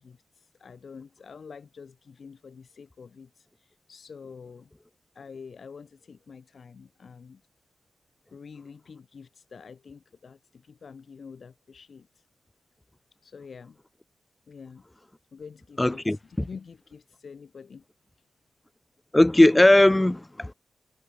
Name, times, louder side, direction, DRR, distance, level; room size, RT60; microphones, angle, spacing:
voice 1, 0.0-4.7 5.1-7.4 8.3-12.3 13.2-13.8 14.5-14.8 15.3-17.8, left 5 dB, 55° left, 2.9 m, -47 dB
voice 2, 15.8-16.2 19.1-20.5, left 1 dB, 10° left, 0.8 m, -18 dB
wide cardioid pair, 145°, 0 cm